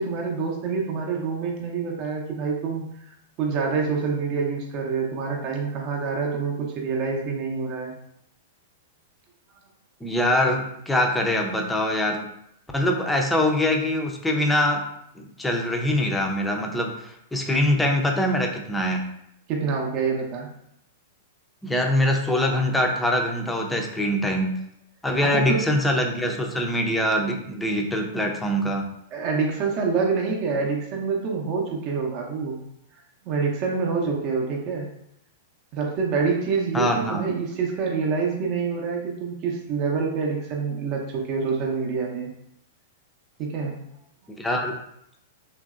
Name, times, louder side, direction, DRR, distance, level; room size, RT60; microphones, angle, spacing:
voice 1, 0.0-2.8 3.4-7.9 19.5-20.5 25.2-25.6 29.1-32.6 33.2-34.9 35.7-42.3 43.4-43.8, right 5 dB, 45° right, 0 dB, 0.6 m, -26 dB
voice 2, 10.0-12.3 12.7-14.8 15.2-19.0 21.6-24.6 25.0-28.9 36.7-37.2 44.3-44.8, left 1 dB, 5° left, 1 dB, 0.5 m, -23 dB
3.0 x 2.6 x 2.4 m, 0.75 s
hypercardioid pair, 115°, 0 cm